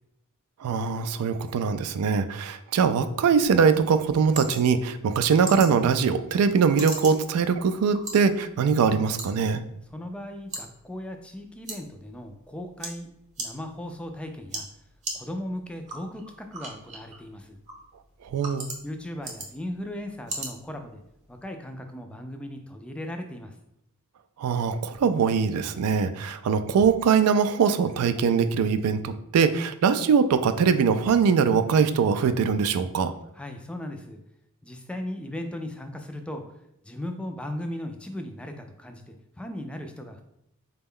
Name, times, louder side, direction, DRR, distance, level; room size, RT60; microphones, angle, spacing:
voice 1, 0.6-9.6 18.2-18.7 24.4-33.1, right 6 dB, 80° right, 12 dB, 0.3 m, -22 dB
sound 1, 3.4-21.4, right 2 dB, 35° right, 0.7 m, -41 dB
voice 2, 9.9-14.7 15.1-17.6 18.8-21.0 21.3-23.6 33.3-34.2 34.6-36.4 36.8-40.2, left 1 dB, 5° left, 5 dB, 0.3 m, -37 dB
4.0 x 2.2 x 3.6 m, 0.79 s
head